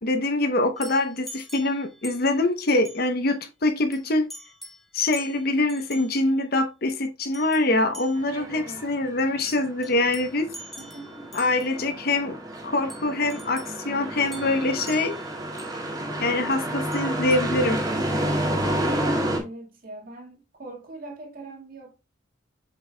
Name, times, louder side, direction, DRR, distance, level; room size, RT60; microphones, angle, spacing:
voice 1, 0.0-4.3 4.9-10.5 11.3-12.3 12.6-15.1 16.2-17.8, left 2 dB, 50° left, 0.8 m, -24 dB
sound 1, 0.8-2.4 2.7-3.1 3.9-4.0 4.3-4.8 5.1-6.1 7.3-7.7 7.9-8.4 9.5-11.8 12.9-13.8 14.2-15.8 16.5-16.6 16.9-17.4, equal, ahead, 0.7 m, -44 dB
sound 2, 8.2-19.4, right 1 dB, 20° right, 1.9 m, -30 dB
voice 2, 8.3-8.8 10.8-11.6 19.4-21.9, right 2 dB, 45° right, 2.0 m, -42 dB
7.9 x 5.7 x 2.2 m
head